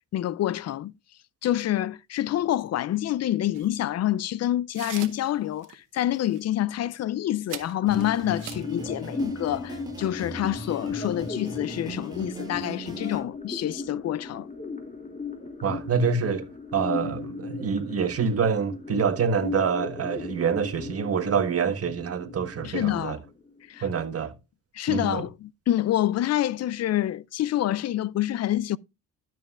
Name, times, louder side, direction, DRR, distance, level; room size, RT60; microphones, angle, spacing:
voice 1, 0.1-0.9 1.4-14.5 22.6-23.2 23.7-23.8 24.7-28.8, left 13 dB, 55° left, 0.4 m, -27 dB
sound 1, 3.5-3.7 4.7-5.3 5.6-5.7 6.1-6.4 7.5-8.7, right 11 dB, 75° right, 1.2 m, -41 dB
sound 2, 7.8-23.8, left 4 dB, 25° left, 2.6 m, -37 dB
sound 3, 7.9-13.2, right 2 dB, 10° right, 6.2 m, -40 dB
voice 2, 15.6-23.2 23.8-24.3 24.9-25.3, right 6 dB, 45° right, 1.5 m, -26 dB
12.5 x 7.6 x 2.5 m
cardioid pair, 100°, 32 cm